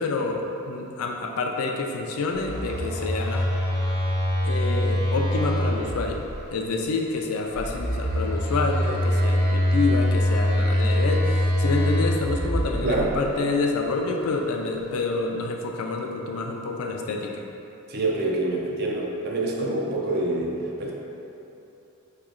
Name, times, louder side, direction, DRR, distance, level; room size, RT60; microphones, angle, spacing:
voice 1, 0.0-3.5 4.4-6.2 6.5-17.4, left 3 dB, 75° left, 2 dB, 0.4 m, -28 dB
Telephone, 2.4-6.4 7.5-13.2, equal, 70° right, 0.9 m, -24 dB
voice 2, 12.8-13.2 17.9-20.9, right 2 dB, 45° right, -2 dB, 0.5 m, -26 dB
3.1 x 2.8 x 3.7 m, 2.9 s
head